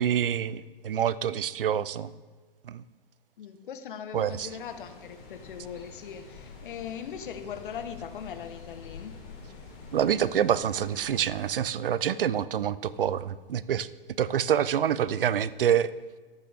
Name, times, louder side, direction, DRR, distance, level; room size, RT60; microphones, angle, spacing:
voice 1, 0.0-2.1 2.7-2.8 4.1-4.5 9.9-13.9 14.2-15.9, right 9 dB, 65° right, 18 dB, 0.7 m, -26 dB
voice 2, 3.4-9.2, left 8 dB, 60° left, 8 dB, 1.4 m, -40 dB
sound 1, 4.3-11.5, left 5 dB, 25° left, 5.3 m, -47 dB
25.0 x 9.0 x 3.6 m, 1.4 s
figure-of-eight pair, 115°, 29 cm